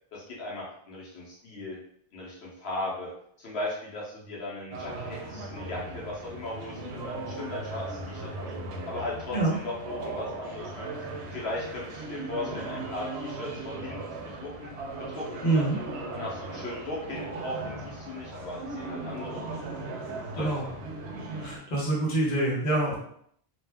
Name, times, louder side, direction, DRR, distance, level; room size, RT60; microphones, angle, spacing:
voice 1, 0.1-1.8 2.1-3.1 3.4-8.5 8.9-15.8 16.1-19.6 20.3-20.8, left 2 dB, 75° left, -4 dB, 0.9 m, -38 dB
sound 1, 4.7-21.6, right 2 dB, 85° right, 0.8 m, -38 dB
voice 2, 15.4-15.8 20.3-20.7 21.4-23.0, right 2 dB, 45° left, -4 dB, 1.0 m, -26 dB
2.5 x 2.1 x 3.3 m, 0.68 s
omnidirectional pair, 1.1 m